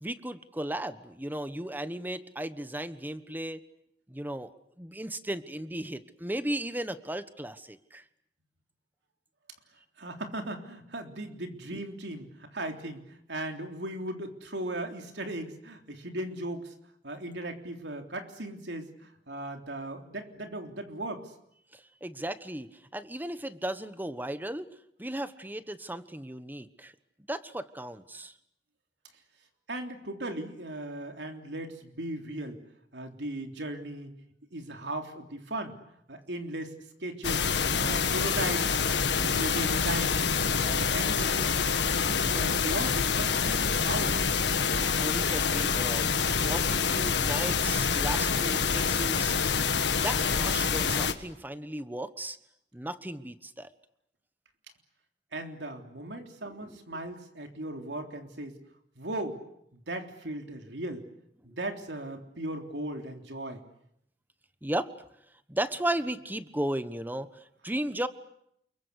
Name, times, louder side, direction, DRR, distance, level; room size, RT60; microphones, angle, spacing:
voice 1, 0.0-3.6 4.1-8.0 11.7-11.8 21.7-24.7 25.0-26.9 27.3-28.3 44.8-46.1 46.5-49.3 49.9-52.4 52.7-53.7 56.4-56.8 61.5-61.6 64.6-64.9 65.5-68.1, right 1 dB, 10° right, 12 dB, 1.2 m, -35 dB
voice 2, 10.0-16.7 17.0-21.3 29.7-32.6 32.9-34.1 34.5-35.8 36.1-37.5 37.8-38.8 39.1-41.6 41.9-44.2 55.3-58.5 59.0-59.4 59.7-61.1 61.4-63.6, right 1 dB, 80° right, 4 dB, 3.5 m, -37 dB
sound 1, 37.2-51.1, left 6 dB, 85° left, 1.7 m, -26 dB
29.5 x 22.5 x 8.2 m, 0.75 s
head